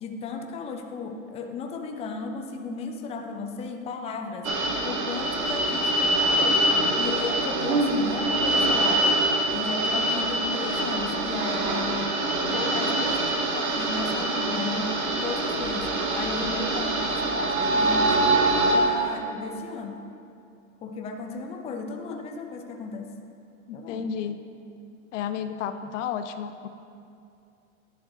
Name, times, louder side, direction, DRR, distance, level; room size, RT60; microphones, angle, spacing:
voice 1, 0.0-4.5 4.8-6.6 7.0-9.2 9.5-14.9 15.2-18.3 18.7-20.0 20.8-23.1 23.7-24.1, left 4 dB, 15° left, 4 dB, 0.5 m, -34 dB
sound 1, 4.4-18.8, right 2 dB, 85° right, 1.2 m, -24 dB
voice 2, 23.7-24.4 25.1-26.7, left 8 dB, 65° left, 10 dB, 0.6 m, -32 dB
11.0 x 7.1 x 3.1 m, 2.5 s
hypercardioid pair, 110°, 41 cm